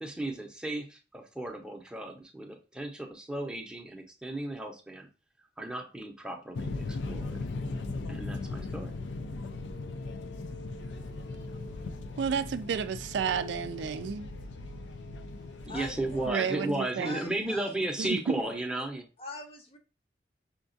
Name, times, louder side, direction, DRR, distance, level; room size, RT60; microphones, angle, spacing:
voice 1, 0.0-5.1 5.6-7.4 8.1-8.9 15.6-19.1, right 1 dB, 5° right, 0.6 m, -35 dB
sound 1, 6.5-16.3, left 3 dB, 80° left, 0.4 m, -38 dB
voice 2, 12.2-14.3 16.3-17.2 18.0-18.2, right 7 dB, 70° right, 0.3 m, -31 dB
voice 3, 15.6-17.7 19.2-19.8, left 1 dB, 35° left, 0.7 m, -43 dB
5.8 x 2.3 x 2.5 m
head